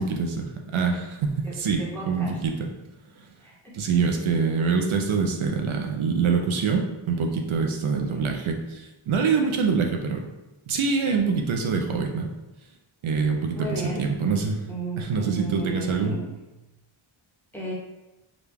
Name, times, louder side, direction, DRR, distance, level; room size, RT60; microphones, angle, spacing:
voice 1, 0.0-2.7 3.2-3.3 3.7-10.3 10.7-12.3 13.0-14.6 15.0-16.2, right 5 dB, 75° right, 2 dB, 0.6 m, -25 dB
voice 2, 1.4-2.4 3.4-3.7 8.1-8.2 13.5-14.0 14.7-16.2 17.5-17.7, right 2 dB, 5° left, -6 dB, 1.1 m, -34 dB
4.9 x 2.3 x 3.4 m, 1.0 s
wide cardioid pair, 135°, 49 cm